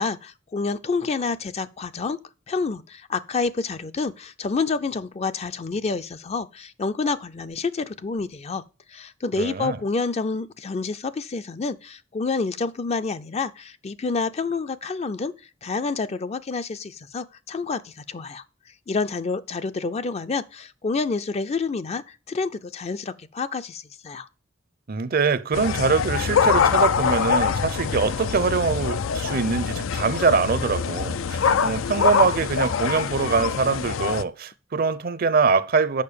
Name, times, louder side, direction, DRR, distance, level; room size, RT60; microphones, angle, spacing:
voice 1, 0.0-2.2 2.5-8.6 8.9-15.3 15.6-18.4 18.9-24.3, left 4 dB, 35° left, 0.4 m, -28 dB
voice 2, 9.4-9.8 24.9-36.0, right 4 dB, 50° right, 0.6 m, -23 dB
sound 1, 25.5-34.2, left 6 dB, 90° left, 0.4 m, -24 dB
6.6 x 5.3 x 6.8 m
head